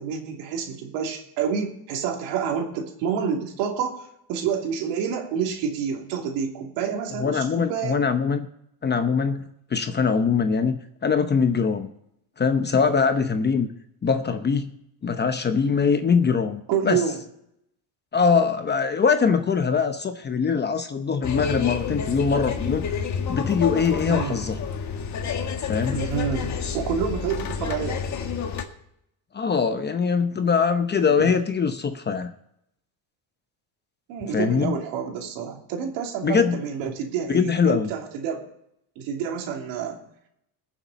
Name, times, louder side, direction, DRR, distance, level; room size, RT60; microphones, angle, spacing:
voice 1, 0.0-8.0 16.7-17.2 24.1-24.4 25.9-28.0 31.0-31.3 34.1-38.4 39.0-40.0, right 7 dB, 90° right, 2 dB, 2.9 m, -28 dB
voice 2, 7.2-8.5 8.8-11.9 12.4-13.7 14.0-14.7 15.0-17.0 18.1-22.9 23.3-24.6 25.6-26.0 29.3-32.3 34.3-34.8 36.2-36.6 37.3-37.9, left 5 dB, 25° left, 8 dB, 0.8 m, -22 dB
sound 1, 21.2-28.6, left 6 dB, 40° left, 1.7 m, -29 dB
21.5 x 7.4 x 4.0 m, 0.77 s
cardioid pair, 140°, 44 cm